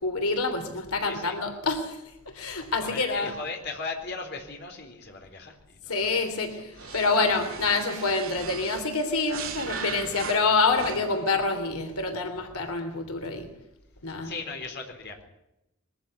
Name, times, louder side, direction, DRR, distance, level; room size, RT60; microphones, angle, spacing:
voice 1, 0.0-2.0 2.3-3.3 5.9-13.5 14.0-14.3, left 3 dB, 85° left, 6 dB, 3.2 m, -27 dB
voice 2, 1.0-1.4 2.8-5.6 5.8-5.9 6.5-7.0 14.2-15.2, left 4 dB, 50° left, 3 dB, 4.0 m, -37 dB
sound 1, 6.8-11.3, right 5 dB, 70° right, 3.0 m, -38 dB
22.0 x 14.5 x 8.7 m, 0.87 s
head